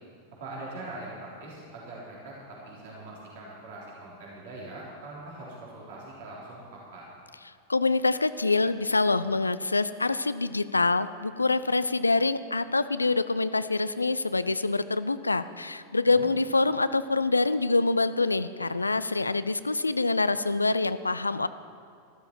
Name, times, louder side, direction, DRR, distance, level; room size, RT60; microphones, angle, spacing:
voice 1, 0.4-7.1 16.1-16.3, right 2 dB, 55° right, -5 dB, 3.6 m, -42 dB
voice 2, 7.7-21.5, left 3 dB, 80° left, 14 dB, 0.4 m, -25 dB
13.5 x 12.5 x 4.5 m, 2.3 s
figure-of-eight pair, 90°, 0 cm